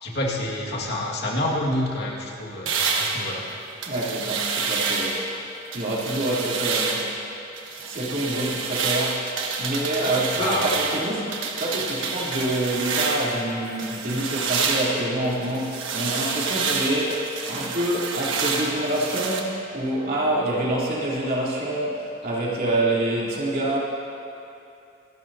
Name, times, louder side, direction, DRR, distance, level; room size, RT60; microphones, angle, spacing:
voice 1, 0.0-3.4 10.4-10.7, left 1 dB, 60° left, -3 dB, 2.0 m, -27 dB
sound 1, 2.7-5.3 5.7-7.2 7.6-13.4 13.8-19.4, right 4 dB, 85° right, 1.3 m, -28 dB
voice 2, 3.9-5.2 5.7-7.1 7.8-11.3 11.6-23.8, right 1 dB, 50° right, -6 dB, 3.1 m, -26 dB
26.0 x 12.0 x 2.8 m, 2.7 s
head